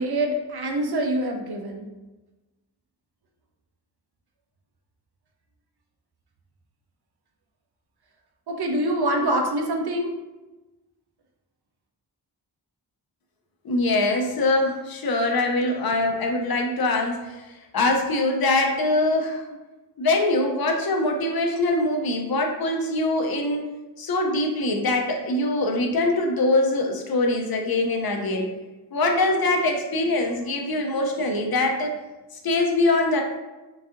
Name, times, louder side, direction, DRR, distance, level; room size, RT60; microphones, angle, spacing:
voice 1, 0.0-1.9 8.5-10.1, right 1 dB, 60° right, 2 dB, 0.6 m, -25 dB
voice 2, 13.6-17.4 17.7-19.4 20.0-23.7 24.0-28.5 28.9-31.9 32.4-33.2, left 2 dB, 60° left, 2 dB, 0.5 m, -23 dB
3.9 x 2.6 x 2.4 m, 1.1 s
wide cardioid pair, 130°, 43 cm